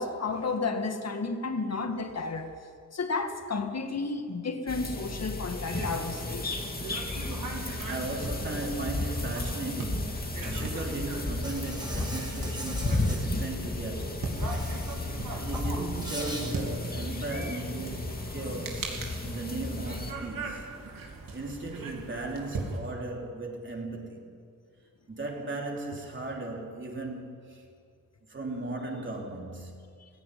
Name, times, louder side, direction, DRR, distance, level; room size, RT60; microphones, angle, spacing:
voice 1, 0.0-2.5 2.9-6.4 10.5-10.6, left 3 dB, 45° left, 6 dB, 1.9 m, -32 dB
sound 1, 4.7-20.1, left 2 dB, 25° left, 2.2 m, -34 dB
sound 2, 5.6-22.8, right 3 dB, 70° right, 3.1 m, -40 dB
voice 2, 7.9-14.3 14.7-15.0 15.3-20.7 21.3-24.3 25.1-27.6 28.2-29.8, right 2 dB, 35° right, 0 dB, 3.7 m, -37 dB
Insect, 11.4-13.2 14.3-15.1 15.4-16.5, right 1 dB, 15° right, 4.3 m, -41 dB
17.0 x 16.0 x 9.5 m, 2.3 s
cardioid pair, 85°, 34 cm